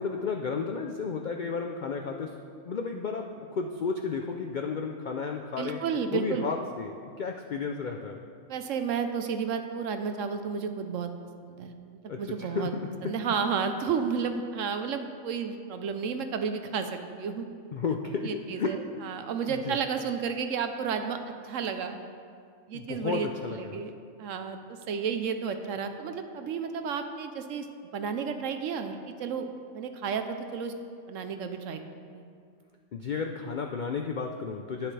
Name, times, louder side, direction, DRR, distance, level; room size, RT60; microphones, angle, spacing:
voice 1, 0.0-2.3 2.6-5.8 6.1-8.2 12.1-12.8 17.7-18.3 18.6-18.7 19.5-19.8 22.7-23.8 32.9-34.9, left 5 dB, 80° left, 3 dB, 0.4 m, -32 dB
voice 2, 5.6-6.5 8.5-11.1 11.4-11.7 12.0-12.7 13.0-17.5 18.2-22.0 22.7-23.9 24.2-27.7 27.9-29.5 29.7-30.7 31.1-31.8 32.1-32.2, right 6 dB, 70° right, 7 dB, 1.0 m, -32 dB
11.0 x 9.9 x 3.3 m, 2.2 s
omnidirectional pair, 1.5 m